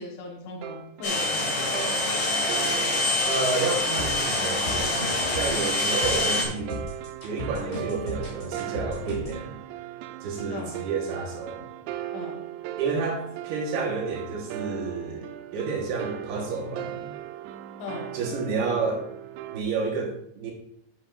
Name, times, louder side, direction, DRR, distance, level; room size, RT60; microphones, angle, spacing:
voice 1, 0.0-1.9 10.5-10.8 12.1-12.4 17.8-18.2, left 2 dB, 85° left, 1 dB, 3.8 m, -38 dB
sound 1, 0.6-19.6, right 11 dB, 85° right, 2.8 m, -38 dB
sound 2, 1.0-6.4, left 2 dB, 50° left, 2.8 m, -25 dB
voice 2, 3.3-6.8 7.2-9.6 10.2-11.6 12.8-17.2 18.1-19.0 19.5-20.5, right 4 dB, 70° right, 0 dB, 3.2 m, -30 dB
sound 3, 4.0-9.4, left 1 dB, 15° left, 3.4 m, -36 dB
10.5 x 8.3 x 2.5 m, 0.72 s
omnidirectional pair, 5.2 m